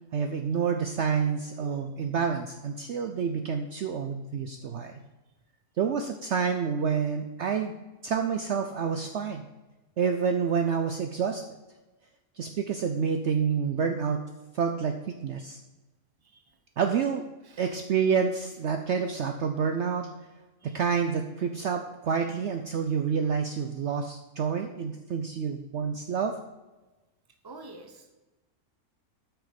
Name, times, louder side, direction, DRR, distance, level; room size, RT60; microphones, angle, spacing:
voice 1, 0.1-5.0 5.8-7.7 8.0-9.5 10.0-11.4 12.4-14.2 14.5-15.6 16.8-17.2 17.6-20.1 20.7-26.4, right 6 dB, 60° right, 5 dB, 0.8 m, -28 dB
voice 2, 27.4-28.1, right 2 dB, 20° right, 5 dB, 0.8 m, -47 dB
8.6 x 6.1 x 5.1 m, 1.1 s
omnidirectional pair, 1.5 m